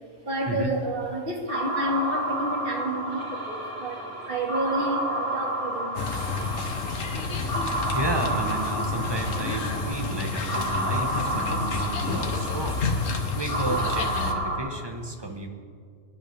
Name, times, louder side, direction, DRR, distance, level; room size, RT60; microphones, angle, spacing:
voice 1, 0.2-6.1, right 1 dB, 45° right, -1 dB, 2.1 m, -30 dB
sound 1, 1.5-14.6, right 1 dB, 60° right, 3.2 m, -31 dB
sound 2, 6.0-14.3, left 4 dB, 90° left, 1.5 m, -30 dB
voice 2, 7.9-12.8 13.3-15.5, right 2 dB, 20° right, 3 dB, 1.1 m, -32 dB
24.0 x 10.5 x 3.4 m, 2.2 s
omnidirectional pair, 1.3 m